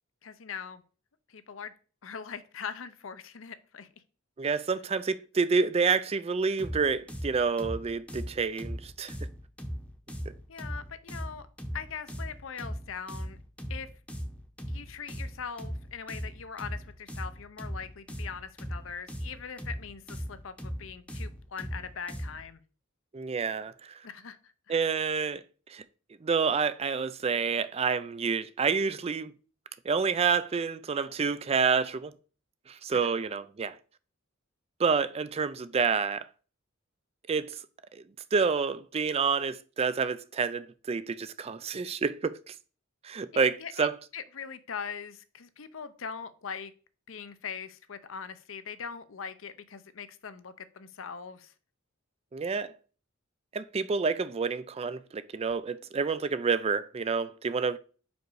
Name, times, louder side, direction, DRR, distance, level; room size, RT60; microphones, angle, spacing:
voice 1, 0.2-0.8 1.3-1.7 2.0-3.9 10.5-11.5 11.7-13.4 13.7-13.9 14.7-22.6 24.0-24.4 24.7-24.8 33.0-33.1 43.3-43.9 44.1-46.7 47.1-51.5, left 6 dB, 70° left, 0.7 m, -41 dB
voice 2, 4.4-9.2 10.3-10.4 23.1-23.9 24.7-25.4 25.7-25.8 26.2-29.3 29.8-32.1 32.7-33.8 34.8-36.3 37.3-37.6 38.3-42.5 43.0-43.9 52.3-52.7 53.5-57.8, right 5 dB, 30° right, 0.4 m, -28 dB
sound 1, 6.6-22.5, equal, 5° left, 0.8 m, -39 dB
5.2 x 5.1 x 4.7 m
head